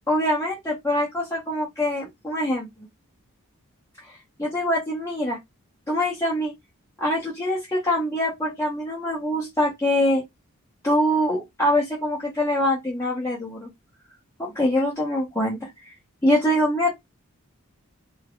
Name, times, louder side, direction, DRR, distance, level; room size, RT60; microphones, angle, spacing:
voice 1, 0.1-2.7 4.1-5.4 5.9-6.5 7.0-10.2 10.8-13.7 14.4-15.9 16.2-16.9, left 1 dB, 15° left, 1.3 m, -24 dB
4.6 x 2.3 x 4.7 m
head